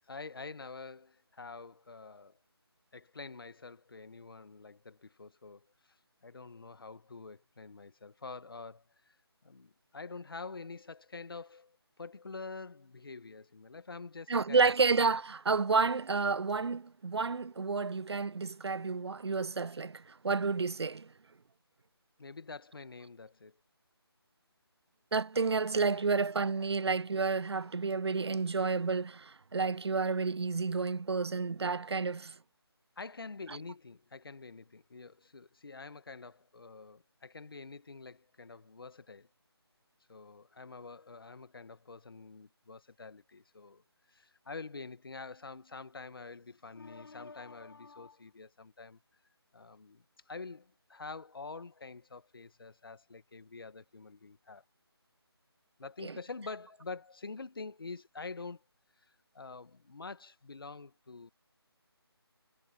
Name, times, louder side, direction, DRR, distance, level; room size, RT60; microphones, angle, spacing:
voice 1, 0.0-2.4 2.9-6.0 6.2-9.2 9.4-14.7 22.2-23.6 25.9-26.0 33.0-39.3 40.1-43.8 44.1-49.0 49.5-54.6 55.8-58.6 59.3-61.3, left 4 dB, 60° left, 1.6 m, -47 dB
voice 2, 14.3-21.1 25.1-32.4 56.0-56.1, right 4 dB, 75° right, 0.5 m, -30 dB
figure-of-eight pair, 155°, 14 cm